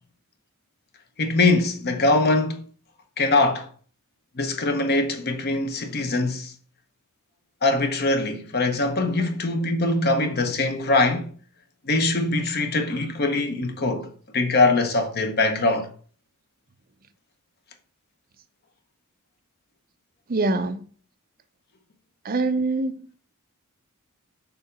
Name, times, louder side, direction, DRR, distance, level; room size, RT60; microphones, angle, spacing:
voice 1, 1.2-2.6 3.2-3.7 4.4-6.5 7.6-11.3 11.8-15.9, left 2 dB, 45° left, 0.9 m, -22 dB
voice 2, 20.3-20.8 22.2-23.0, right 3 dB, 40° right, 0.6 m, -24 dB
6.9 x 2.8 x 5.1 m
head